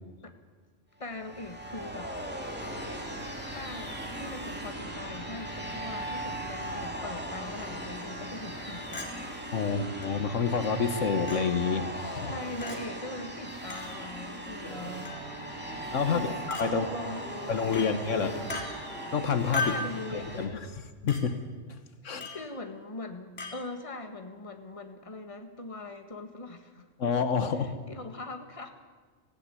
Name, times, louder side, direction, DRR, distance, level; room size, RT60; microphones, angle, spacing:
voice 1, 1.0-2.1 3.5-9.1 9.6-9.9 12.2-15.1 16.1-18.6 19.6-20.5 22.3-27.1 27.6-28.7, left 2 dB, 25° left, 6 dB, 1.7 m, -41 dB
sound 1, 1.0-20.5, right 1 dB, 10° right, 2.7 m, -39 dB
Chink clink, 8.9-9.1 10.0-10.1 11.3-11.4 12.6-12.8 13.7-13.9 15.1-15.3 16.5-16.7 17.7-17.9 18.5-18.7 19.5-19.9 21.1-21.2 22.2-22.4 23.4-23.6, left 3 dB, 55° left, 3.0 m, -34 dB
voice 2, 9.5-12.3 15.9-16.9 17.5-18.3 19.1-19.8 20.1-21.4 22.0-22.3 27.0-27.7, left 5 dB, 80° left, 9 dB, 1.5 m, -28 dB
sound 2, 13.9-19.6, right 1 dB, 50° right, 3.1 m, -44 dB
17.5 x 16.0 x 9.9 m, 1.5 s
omnidirectional pair, 1.3 m